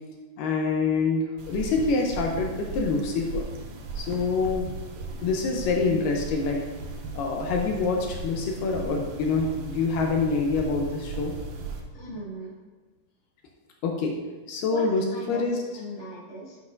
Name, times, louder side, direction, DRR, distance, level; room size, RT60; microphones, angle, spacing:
voice 1, 0.4-3.5 4.0-4.7 5.2-6.6 7.1-11.3 13.8-14.1 14.5-15.6, left 4 dB, 80° left, 1 dB, 2.3 m, -26 dB
sound 1, 1.4-11.8, right 3 dB, 80° right, 1.5 m, -37 dB
voice 2, 11.9-12.5 14.7-15.5 15.7-16.6, equal, 15° left, -9 dB, 1.4 m, -38 dB
10.5 x 5.4 x 2.6 m, 1.3 s
omnidirectional pair, 4.1 m